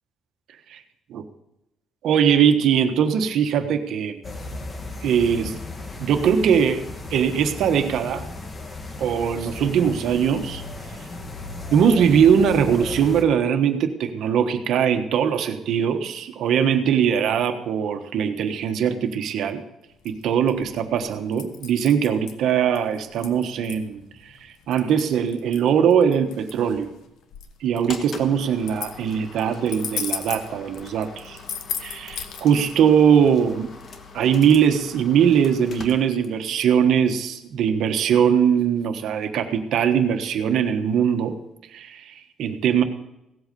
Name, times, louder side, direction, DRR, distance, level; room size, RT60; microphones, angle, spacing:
voice 1, 2.0-4.2 5.0-5.5 6.0-6.8 7.1-8.3 9.0-10.6 11.7-19.6 20.0-26.9 27.6-31.4 31.8-33.7 34.1-41.3 41.7-42.8, right 8 dB, 70° right, 7 dB, 1.3 m, -21 dB
sound 1, 4.2-13.2, left 2 dB, 25° left, 1.4 m, -35 dB
sound 2, 19.9-32.6, left 7 dB, 75° left, 1.3 m, -36 dB
sound 3, 27.8-36.6, left 4 dB, 45° left, 1.4 m, -43 dB
17.0 x 8.0 x 5.4 m, 0.89 s
cardioid pair, 125°, 0 cm